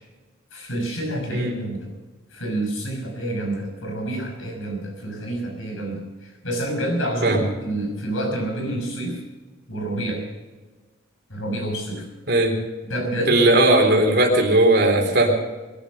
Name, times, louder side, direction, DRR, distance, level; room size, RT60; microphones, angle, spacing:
voice 1, 0.5-1.9 2.3-6.0 6.4-9.2 9.7-10.2 11.3-12.1 12.8-13.5, right 1 dB, 85° left, 2 dB, 6.1 m, -28 dB
voice 2, 13.3-15.5, right 1 dB, 50° right, 1 dB, 3.7 m, -17 dB
21.5 x 12.5 x 5.3 m, 1.2 s
head